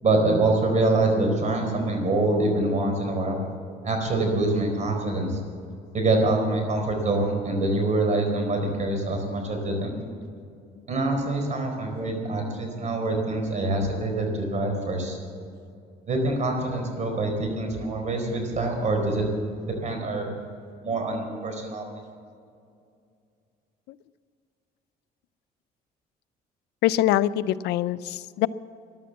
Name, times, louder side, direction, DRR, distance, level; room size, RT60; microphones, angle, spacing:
voice 1, 0.0-3.4 3.8-5.4 5.9-9.9 10.9-15.2 16.1-19.2 19.7-20.3 20.8-21.9, right 2 dB, 45° right, 3 dB, 4.3 m, -25 dB
voice 2, 26.8-28.5, left 13 dB, 80° left, 16 dB, 0.5 m, -23 dB
14.5 x 11.5 x 7.2 m, 2.4 s
cardioid pair, 110°, 17 cm